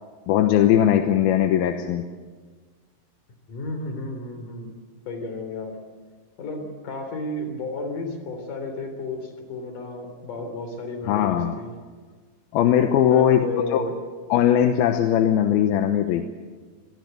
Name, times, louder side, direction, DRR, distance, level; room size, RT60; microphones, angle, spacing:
voice 1, 0.3-2.0 11.1-11.6 12.5-13.4 13.7-13.8 14.3-16.3, left 10 dB, 90° left, 7 dB, 2.9 m, -19 dB
voice 2, 3.5-4.7 5.1-5.8 6.4-11.7 13.0-13.9, left 2 dB, 60° left, 6 dB, 5.0 m, -32 dB
25.0 x 20.0 x 8.0 m, 1.5 s
omnidirectional pair, 4.3 m